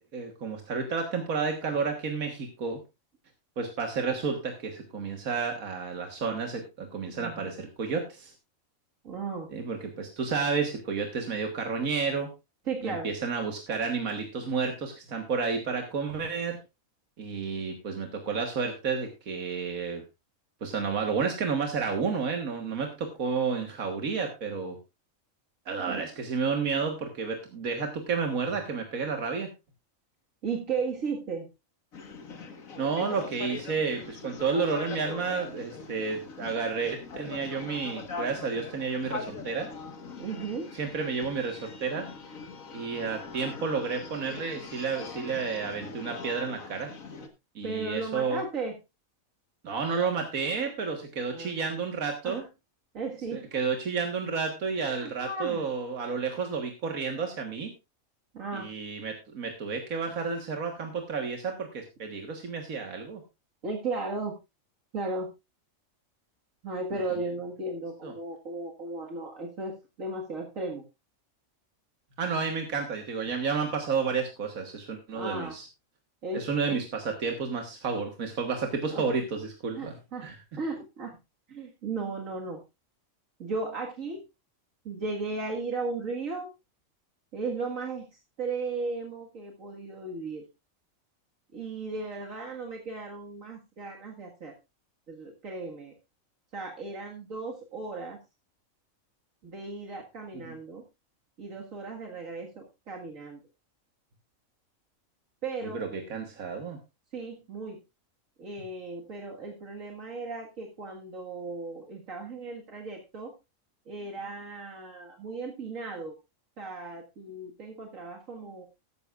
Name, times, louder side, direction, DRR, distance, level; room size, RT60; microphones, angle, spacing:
voice 1, 0.1-2.8 3.6-8.3 9.5-12.3 12.8-16.6 17.2-20.0 20.6-24.8 25.7-29.5 32.8-39.7 40.7-42.1 42.7-46.9 47.6-48.4 49.6-52.4 53.3-57.7 58.5-63.2 68.0-68.1 72.2-75.6 76.3-79.9 80.2-80.4 100.5-100.6 105.7-106.8, right 5 dB, 90° right, 4 dB, 2.0 m, -31 dB
voice 2, 7.0-7.5 9.0-9.5 12.7-13.1 25.9-26.0 30.4-31.5 40.2-40.7 47.6-48.8 51.3-51.6 52.2-52.4 52.9-53.5 54.8-55.7 58.3-58.7 63.6-64.3 64.9-65.3 66.6-70.8 75.1-75.6 76.2-76.8 78.9-79.1 79.8-80.3 80.6-81.1 81.5-82.6 83.4-84.2 84.8-86.5 87.3-88.1 88.4-90.5 91.5-94.5 95.1-96.0 96.5-98.2 99.4-100.8 101.4-103.4 105.4-105.8 107.1-107.8 108.4-113.3 113.9-116.2 116.6-118.7, right 3 dB, 70° right, 1 dB, 2.2 m, -35 dB
sound 1, 31.9-47.3, left 4 dB, 75° left, 2.0 m, -42 dB
14.0 x 12.0 x 2.4 m, 0.25 s
omnidirectional pair, 1.4 m